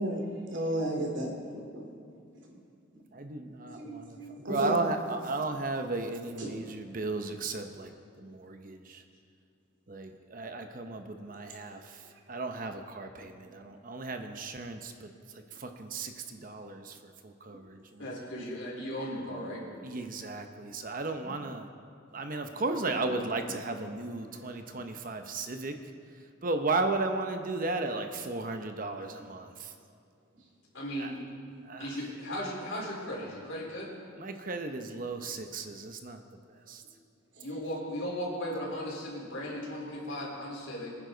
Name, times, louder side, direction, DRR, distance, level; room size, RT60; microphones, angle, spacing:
voice 1, 0.0-1.9 2.4-2.6 2.9-3.0 3.7-4.8 6.4-6.6 8.2-8.3 11.2-11.4 12.3-12.4 13.4-13.7 17.5-17.6 21.2-21.3 22.9-23.0 23.5-23.6 24.3-24.5 24.8-24.9 37.3-37.5, right 1 dB, 65° right, 0 dB, 2.7 m, -36 dB
voice 2, 3.1-9.0 9.9-12.0 12.3-17.0 17.2-18.1 19.8-21.7 22.1-25.8 26.4-29.7 31.0-31.1 31.7-31.9 34.2-36.2 36.7-36.8, right 3 dB, 45° right, 6 dB, 0.8 m, -35 dB
voice 3, 18.0-19.6 30.7-31.2 31.8-33.9 37.4-40.9, equal, 75° left, -4 dB, 4.2 m, -36 dB
23.5 x 9.9 x 4.0 m, 2.4 s
head